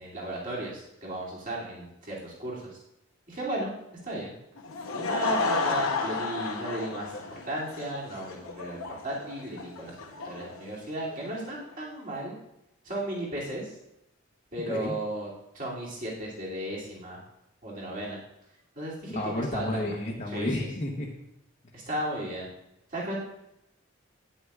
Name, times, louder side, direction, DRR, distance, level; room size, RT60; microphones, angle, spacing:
voice 1, 0.0-2.8 3.3-3.7 4.0-4.3 5.0-7.1 7.5-10.0 10.2-12.3 12.8-13.7 14.5-15.3 15.5-17.2 17.6-18.2 18.8-20.0 20.3-20.5 21.7-22.5 22.9-23.2, right 1 dB, 40° right, -6 dB, 2.6 m, -35 dB
Laughter / Crowd, 4.6-11.5, left 3 dB, 85° left, 0.9 m, -32 dB
voice 2, 14.7-15.0 19.1-21.1, left 1 dB, 35° left, -3 dB, 0.9 m, -31 dB
11.0 x 9.3 x 2.4 m, 0.84 s
head